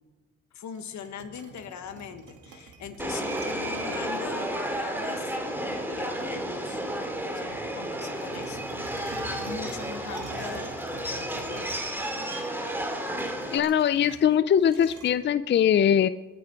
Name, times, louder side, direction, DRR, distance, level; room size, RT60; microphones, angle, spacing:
voice 1, 0.5-5.3 5.9-6.8 7.3-8.7 9.0-11.9, left 7 dB, 70° left, 9 dB, 1.6 m, -41 dB
sound 1, 0.7-4.4 5.0-5.1 5.5-6.7 7.0-15.1, right 3 dB, 80° right, 2.2 m, -47 dB
Subway metro underground, 3.0-13.6, right 1 dB, 5° right, 2.4 m, -32 dB
voice 2, 13.5-16.1, left 9 dB, 40° left, 14 dB, 0.4 m, -21 dB
21.5 x 10.0 x 4.7 m, 1.2 s
cardioid pair, 90°, 30 cm